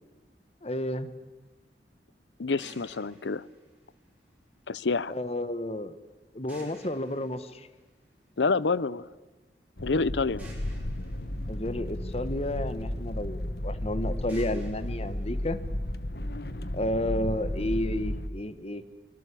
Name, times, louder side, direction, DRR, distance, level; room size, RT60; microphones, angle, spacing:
voice 1, 0.6-1.1 5.1-6.0 6.3-7.7 11.5-15.6 16.7-18.8, left 1 dB, 35° left, 13 dB, 1.4 m, -31 dB
voice 2, 2.4-3.5 4.7-5.1 8.4-9.1 9.8-10.5, left 4 dB, 85° left, 20 dB, 0.7 m, -27 dB
sound 1, 2.6-4.6 6.5-8.5 10.4-12.6 14.3-16.3, right 1 dB, 10° right, 7.3 m, -54 dB
sound 2, 9.8-18.3, left 1 dB, 60° left, 1.3 m, -33 dB
25.0 x 22.0 x 8.5 m, 1.2 s
head